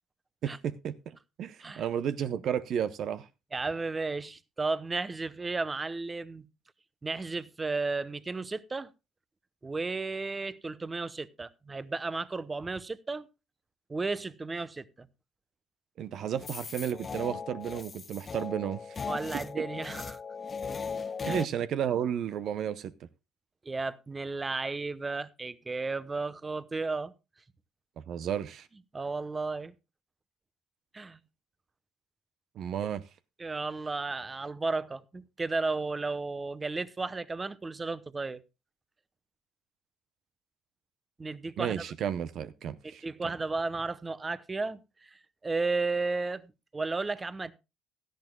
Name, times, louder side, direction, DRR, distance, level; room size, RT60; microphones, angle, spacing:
voice 1, 0.4-3.3 16.0-19.0 21.2-22.9 28.0-28.7 32.6-33.0 41.6-43.0, right 9 dB, 65° right, 0.7 m, -32 dB
voice 2, 3.5-6.5 7.0-8.9 9.6-13.3 13.9-15.1 19.1-20.2 21.2-21.4 23.6-27.1 28.9-29.7 30.9-31.2 33.4-38.4 41.2-41.8 42.8-46.4 46.7-47.5, right 3 dB, 25° right, 0.9 m, -34 dB
sound 1, 16.4-21.5, left 5 dB, 35° left, 0.5 m, -38 dB
17.0 x 12.5 x 2.2 m
supercardioid pair, 80°, 0 cm